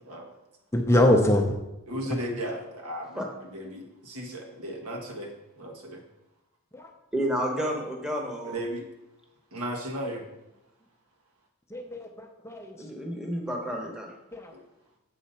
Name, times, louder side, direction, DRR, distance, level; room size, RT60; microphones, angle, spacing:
voice 1, 0.7-1.4 6.7-6.9 11.7-12.7 14.3-14.5, left 1 dB, 10° left, 3 dB, 0.5 m, -23 dB
voice 2, 1.9-5.3 5.6-6.0 8.4-8.8 9.5-10.2 14.5-14.6, equal, 90° right, 1 dB, 1.4 m, -35 dB
voice 3, 7.1-8.6 12.7-14.1, equal, 5° right, 0 dB, 0.9 m, -30 dB
7.4 x 4.1 x 5.6 m, 0.95 s
head